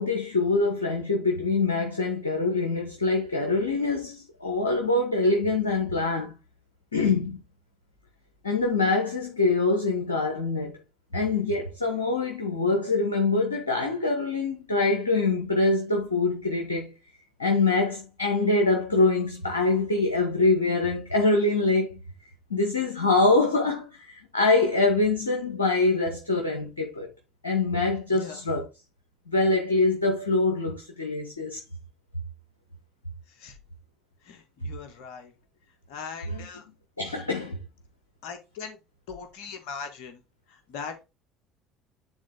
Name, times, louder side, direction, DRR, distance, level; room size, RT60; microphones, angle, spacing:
voice 1, 0.0-6.3 6.9-7.4 8.4-10.7 11.1-16.9 17.4-22.0 22.5-27.1 27.4-28.7 29.3-31.6 36.3-36.5 37.0-37.6, left 3 dB, 85° left, 1.1 m, -24 dB
voice 2, 34.2-35.3 35.9-36.6 38.2-38.8 39.1-40.2 40.7-41.0, left 6 dB, 60° left, 1.6 m, -39 dB
9.6 x 3.8 x 3.7 m
figure-of-eight pair, 60°, 0 cm